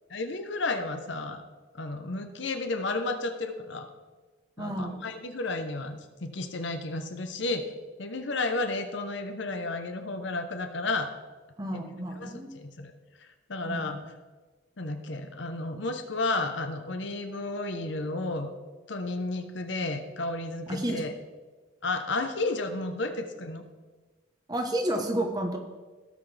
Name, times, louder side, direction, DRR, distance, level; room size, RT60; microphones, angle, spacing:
voice 1, 0.1-1.4 1.7-3.9 4.6-7.6 8.0-11.1 11.7-11.9 12.2-12.9 13.2-14.0 14.8-18.5 18.9-21.1 21.8-23.6, left 2 dB, 65° left, 7 dB, 0.9 m, -32 dB
voice 2, 4.6-5.0 11.6-12.5 13.7-14.0 20.7-21.0 24.5-25.6, right 1 dB, 20° right, 3 dB, 1.0 m, -31 dB
17.0 x 6.0 x 3.4 m, 1.3 s
head